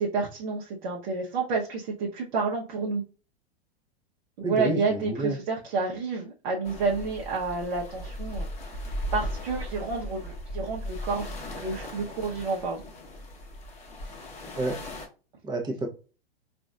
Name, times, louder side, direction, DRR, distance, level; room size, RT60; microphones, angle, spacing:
voice 1, 0.0-3.0 4.4-8.5 9.1-12.9, right 4 dB, 50° right, -2 dB, 0.9 m, -30 dB
voice 2, 4.4-5.4 14.6-14.8 15.5-15.9, right 2 dB, 15° right, 3 dB, 0.7 m, -29 dB
sound 1, 6.6-15.1, equal, 20° left, 1.0 m, -37 dB
4.0 x 2.6 x 2.4 m, 0.34 s
figure-of-eight pair, 100°, 31 cm